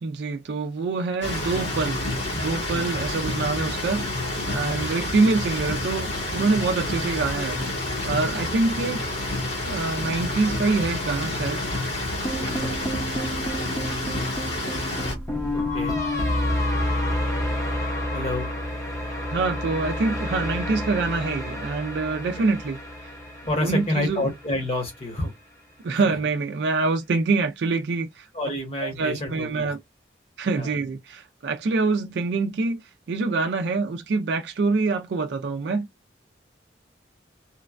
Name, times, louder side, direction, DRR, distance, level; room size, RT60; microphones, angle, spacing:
voice 1, 0.0-2.0 2.3-4.0 4.5-7.7 8.0-9.0 9.6-11.6 19.3-23.1 23.6-24.3 25.8-28.3 28.8-29.8 30.4-32.8 33.1-35.9, right 3 dB, 70° right, 0.4 m, -25 dB
sound 1, 1.2-15.1, left 2 dB, 75° left, 1.7 m, -29 dB
sound 2, 12.2-24.4, left 1 dB, 15° left, 0.7 m, -29 dB
voice 2, 18.1-18.5 23.5-25.3 26.0-26.1 28.3-29.7 30.6-30.7, left 1 dB, 35° left, 1.0 m, -28 dB
3.0 x 2.2 x 2.4 m
head